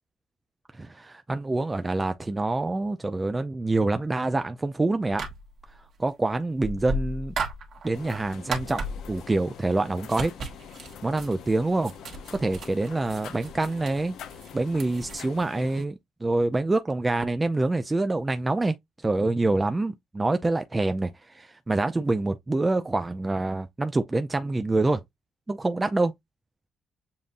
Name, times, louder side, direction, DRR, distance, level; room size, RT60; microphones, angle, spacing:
voice 1, 0.8-5.3 6.0-7.3 7.8-8.8 9.1-10.3 11.0-11.9 12.3-14.1 14.5-18.8 19.0-25.0 25.5-26.1, right 2 dB, 20° right, 0.4 m, -26 dB
sound 1, 5.1-5.8 6.6-9.3 10.0-15.2, right 2 dB, 60° right, 1.4 m, -35 dB
sound 2, 7.9-15.9, left 8 dB, 80° left, 0.6 m, -45 dB
7.1 x 2.6 x 2.5 m
cardioid pair, 90°, 0 cm